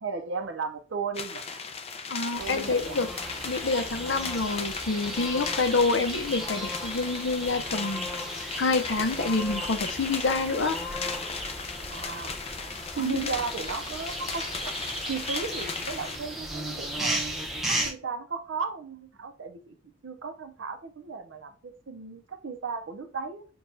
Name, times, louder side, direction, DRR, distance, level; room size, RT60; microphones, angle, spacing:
voice 1, 0.0-1.5 2.4-3.0 11.9-12.4 13.0-14.7 15.1-17.2 17.7-19.8 20.0-23.5, right 5 dB, 85° right, 0.6 m, -35 dB
sound 1, 1.1-16.2, left 5 dB, 35° left, 0.4 m, -37 dB
voice 2, 2.1-3.1 3.4-10.8 13.0-13.2, left 3 dB, 75° left, 0.6 m, -27 dB
sound 2, 2.3-17.9, equal, ahead, 0.7 m, -35 dB
6.7 x 2.3 x 2.6 m
head